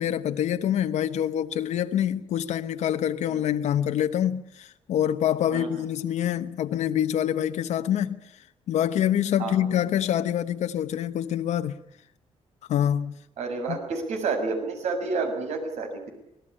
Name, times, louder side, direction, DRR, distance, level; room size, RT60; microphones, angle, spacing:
voice 1, 0.0-8.2 8.7-11.8 12.7-13.1 13.7-13.8, left 10 dB, 85° left, 1.1 m, -26 dB
voice 2, 13.4-16.1, right 4 dB, 75° right, 6.4 m, -29 dB
25.0 x 19.0 x 8.9 m
wide cardioid pair, 170°, 12 cm